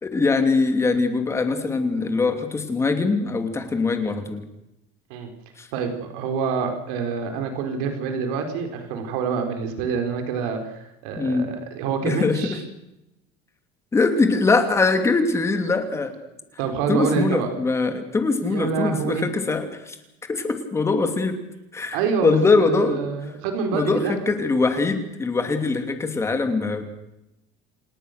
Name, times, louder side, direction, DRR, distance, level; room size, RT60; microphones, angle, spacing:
voice 1, 0.0-4.4 5.6-5.7 11.2-11.5 12.0-12.6 13.9-16.1 16.9-20.0 20.3-21.4 21.7-23.0 23.7-26.8, left 3 dB, 15° left, 7 dB, 2.8 m, -22 dB
voice 2, 5.7-12.6 16.6-17.5 18.4-19.3 21.9-24.1, right 6 dB, 90° right, 5 dB, 4.4 m, -26 dB
28.5 x 18.5 x 6.7 m, 0.88 s
cardioid pair, 165°, 18 cm